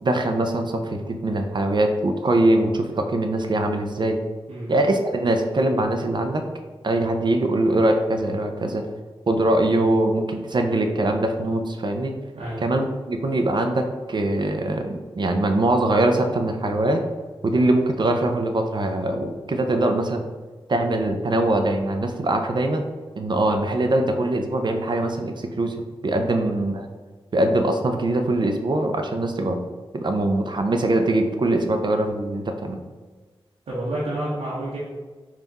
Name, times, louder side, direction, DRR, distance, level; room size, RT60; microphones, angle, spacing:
voice 1, 0.0-4.2 4.7-6.4 6.8-8.8 9.3-12.1 12.6-17.0 17.4-20.2 20.7-22.8 23.2-25.8 26.0-26.9 27.3-29.6 29.9-32.8, right 1 dB, 50° right, 5 dB, 0.5 m, -22 dB
voice 2, 33.7-34.8, right 1 dB, 90° right, -8 dB, 0.9 m, -29 dB
3.5 x 2.4 x 4.0 m, 1.3 s
cardioid pair, 45°, 10 cm